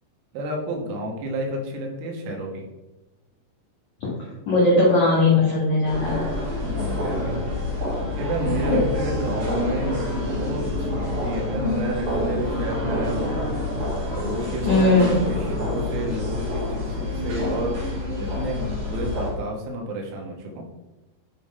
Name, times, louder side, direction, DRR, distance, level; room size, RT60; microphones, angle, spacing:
voice 1, 0.3-2.7 6.6-7.4 8.0-10.0 10.3-13.5 14.1-20.7, right 1 dB, 85° right, 0 dB, 4.0 m, -31 dB
voice 2, 4.4-6.1 8.7-8.8 14.7-15.1, left 2 dB, 85° left, -6 dB, 1.6 m, -18 dB
sound 1, 5.8-19.3, left 1 dB, 50° right, 2.5 m, -27 dB
10.0 x 3.8 x 4.2 m, 1.1 s
omnidirectional pair, 6.0 m